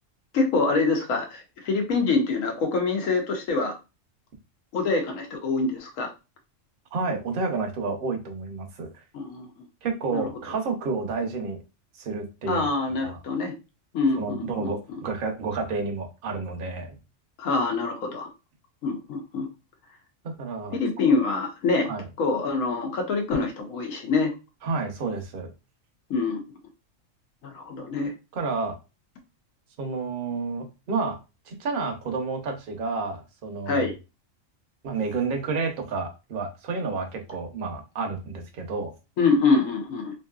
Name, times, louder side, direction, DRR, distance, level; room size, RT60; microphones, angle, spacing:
voice 1, 0.3-3.8 4.7-6.1 9.1-9.5 10.1-10.2 12.5-13.5 13.9-15.0 17.4-18.3 18.8-19.5 20.7-21.9 22.2-24.3 26.1-26.4 27.4-28.1 33.7-33.9 39.2-40.1, left 4 dB, 85° left, 3 dB, 1.1 m, -25 dB
voice 2, 6.9-8.9 9.8-11.6 12.0-12.7 13.0-13.2 14.2-17.0 20.2-20.8 21.9-22.0 24.6-25.5 28.3-28.8 29.8-31.2 31.5-33.9 34.8-38.9, right 4 dB, 50° right, 3 dB, 0.8 m, -30 dB
3.0 x 2.7 x 2.3 m, 0.28 s
omnidirectional pair, 1.3 m